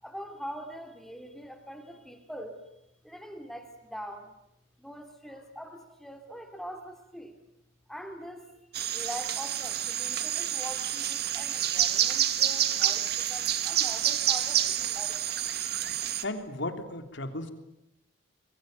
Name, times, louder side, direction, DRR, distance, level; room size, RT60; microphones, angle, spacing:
voice 1, 0.0-2.6 3.0-4.3 4.8-7.4 7.9-8.5 8.9-15.2, equal, ahead, 6 dB, 2.5 m, -43 dB
sound 1, 8.7-16.2, right 11 dB, 55° right, 1.6 m, -28 dB
voice 2, 16.2-17.5, left 2 dB, 75° left, 7 dB, 3.4 m, -35 dB
27.5 x 23.0 x 9.3 m, 0.81 s
head